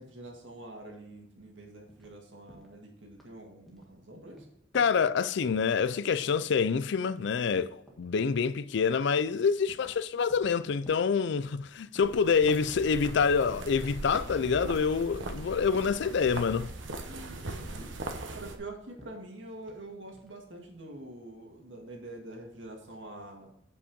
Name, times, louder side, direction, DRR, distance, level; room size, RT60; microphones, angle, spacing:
voice 1, 0.0-4.5 17.0-17.9 18.3-23.5, right 2 dB, 75° right, 2.0 m, -46 dB
sound 1, 1.9-2.2 2.5-2.8 3.0-3.3 3.7-4.0 4.3-5.1 6.3-7.0 7.3-7.6 7.9-8.2 8.9-9.0 9.7-10.0 10.3-11.7 11.9-12.7 14.3-15.1 16.6-16.7 17.1-17.5 17.8-18.7 19.0-19.9 20.1-20.4, equal, ahead, 1.6 m, -57 dB
voice 2, 4.7-16.7, left 6 dB, 65° left, 0.4 m, -27 dB
sound 2, 12.0-18.6, right 2 dB, 90° right, 1.1 m, -40 dB
8.7 x 5.5 x 5.2 m
head